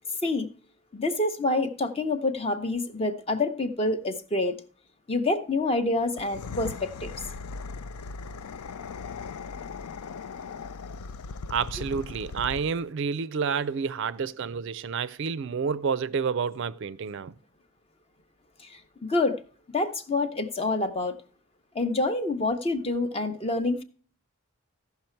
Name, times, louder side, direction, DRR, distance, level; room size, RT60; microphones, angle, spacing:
voice 1, 0.9-4.6 5.1-7.1 18.6-19.4 19.7-21.1 21.7-23.8, left 2 dB, 25° left, 0.7 m, -27 dB
sound 1, 6.1-12.9, left 4 dB, 85° left, 0.5 m, -38 dB
voice 2, 11.5-17.3, right 6 dB, 55° right, 0.4 m, -29 dB
15.0 x 5.8 x 4.4 m
head